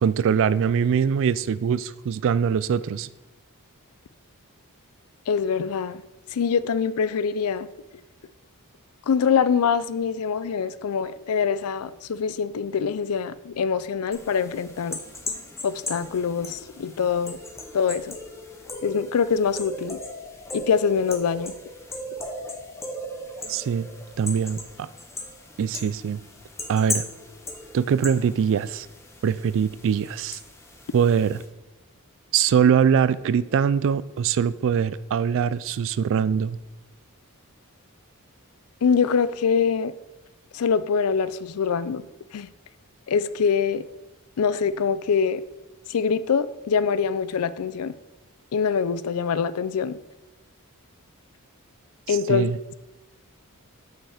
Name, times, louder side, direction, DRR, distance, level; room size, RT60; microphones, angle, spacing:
voice 1, 0.0-3.1 23.5-23.9 24.2-24.9 25.6-26.2 26.7-27.0 27.7-28.9 29.2-30.4 30.9-31.4 32.3-36.6 52.1-52.7, right 7 dB, 60° right, 17 dB, 0.3 m, -22 dB
voice 2, 5.3-6.0 6.3-7.7 9.1-15.0 15.6-17.4 17.7-18.2 18.8-20.0 20.5-21.5 38.8-39.9 40.5-42.0 42.3-42.5 43.1-43.8 44.4-45.4 45.9-47.9 48.5-50.0 52.1-52.5, left 6 dB, 70° left, 15 dB, 0.4 m, -24 dB
sound 1, 14.1-31.5, left 1 dB, 10° left, 0.8 m, -37 dB
5.8 x 5.4 x 6.6 m, 1.0 s
head